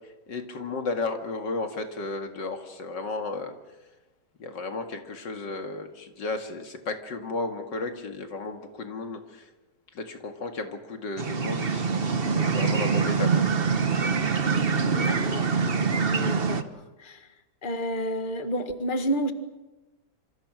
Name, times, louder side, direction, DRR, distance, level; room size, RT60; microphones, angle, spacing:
voice 1, 0.3-3.6 4.4-9.5 9.9-13.3, left 3 dB, 85° left, 5 dB, 2.7 m, -33 dB
sound 1, 11.2-16.6, right 5 dB, 35° right, 1.3 m, -24 dB
voice 2, 14.9-15.6 16.1-16.7 17.0-17.3 17.6-19.3, equal, 30° left, 8 dB, 1.8 m, -30 dB
27.0 x 26.0 x 6.2 m, 1.1 s
omnidirectional pair, 1.9 m